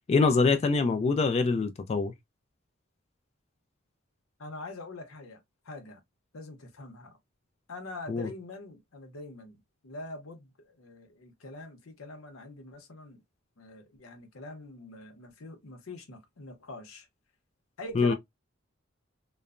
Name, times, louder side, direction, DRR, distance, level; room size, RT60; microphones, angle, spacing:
voice 1, 0.1-2.1 8.1-8.3 18.0-18.1, left 4 dB, 30° left, 0.3 m, -24 dB
voice 2, 4.4-6.0 6.3-7.2 7.7-13.2 13.6-17.1 17.8-18.1, left 2 dB, 90° left, 0.8 m, -44 dB
3.1 x 2.0 x 2.4 m
head